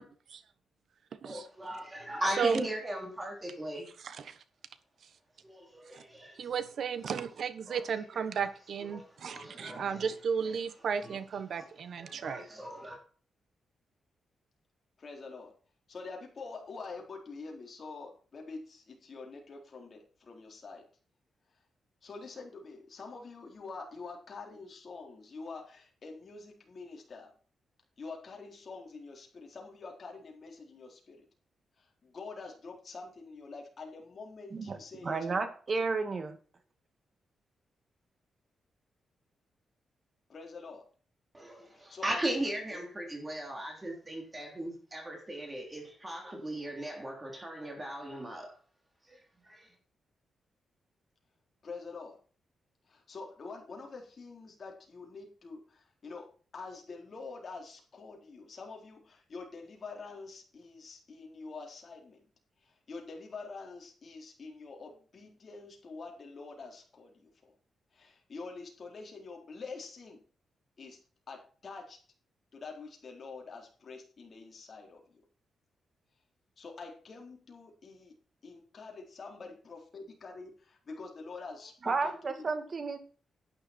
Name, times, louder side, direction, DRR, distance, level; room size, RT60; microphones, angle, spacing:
voice 1, 1.3-3.8 5.4-6.5 7.7-7.8 8.3-8.5 8.8-10.1 11.0-11.2 11.6-11.7 11.9-13.0 41.3-48.5 49.1-49.7, right 1 dB, 20° right, 3.5 m, -38 dB
voice 2, 2.2-2.7 4.0-4.4 5.9-6.0 6.4-12.4, right 6 dB, 65° right, 1.2 m, -34 dB
voice 3, 15.0-15.5 15.9-20.8 22.0-27.3 28.0-31.2 31.8-35.3 40.3-40.8 41.7-42.2 51.6-52.2 52.9-62.2 62.6-67.5 67.9-70.2 70.8-71.0 71.3-72.0 72.5-75.2 76.6-78.1 78.4-82.5, left 4 dB, 45° left, 4.1 m, -46 dB
voice 4, 34.5-36.4 81.8-83.0, right 4 dB, 40° right, 2.1 m, -32 dB
11.5 x 9.9 x 4.5 m
cardioid pair, 110°, 0 cm